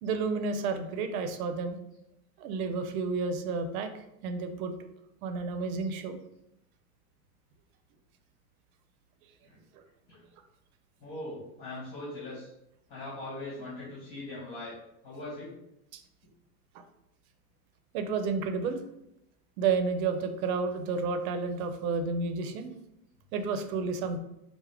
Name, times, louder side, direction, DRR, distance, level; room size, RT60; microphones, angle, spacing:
voice 1, 0.0-1.8 2.4-3.9 4.2-4.7 5.2-6.2 15.9-16.0 16.7-16.8 17.9-18.8 19.6-22.7 23.3-24.2, right 4 dB, 80° right, 7 dB, 0.6 m, -31 dB
voice 2, 11.0-12.5 12.9-14.8 15.0-15.5, left 2 dB, 45° left, -7 dB, 1.4 m, -40 dB
4.8 x 2.1 x 3.4 m, 0.83 s
supercardioid pair, 170°, 42 cm